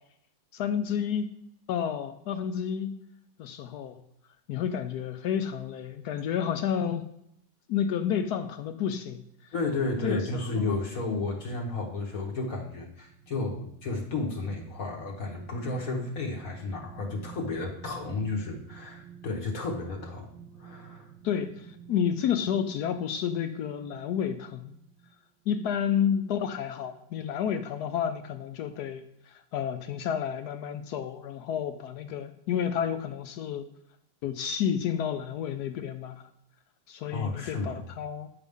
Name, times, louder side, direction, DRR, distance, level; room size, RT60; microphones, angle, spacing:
voice 1, 0.5-1.3 1.7-2.9 3.4-4.0 4.5-7.0 7.7-9.2 10.0-10.2 10.6-10.7 21.2-24.7 25.5-33.7 34.2-36.3 36.9-38.3, left 8 dB, 70° left, 8 dB, 1.0 m, -30 dB
voice 2, 9.5-20.3 20.6-21.1 37.1-37.8, left 3 dB, 55° left, 0 dB, 1.3 m, -32 dB
sound 1, 12.9-25.2 25.7-25.8, right 8 dB, 90° right, 1.3 m, -51 dB
9.2 x 5.3 x 3.5 m, 0.78 s
omnidirectional pair, 2.0 m